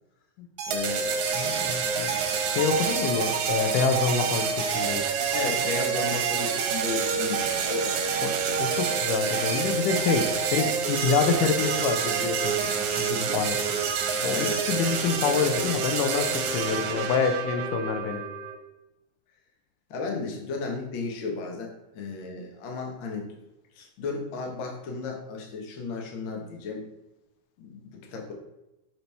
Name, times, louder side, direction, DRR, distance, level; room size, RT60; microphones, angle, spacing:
sound 1, 0.6-18.5, right 6 dB, 75° right, 2.0 m, -27 dB
voice 1, 0.7-1.1 5.3-8.0 9.9-10.2 13.1-13.4 14.3-14.6 19.9-23.3 23.7-26.8 27.6-28.3, left 4 dB, 65° left, 0 dB, 1.2 m, -34 dB
voice 2, 1.4-2.1 2.5-5.1 8.2-13.6 14.2-18.2, left 5 dB, 85° left, 7 dB, 2.3 m, -27 dB
6.7 x 4.5 x 3.3 m, 0.95 s
omnidirectional pair, 3.7 m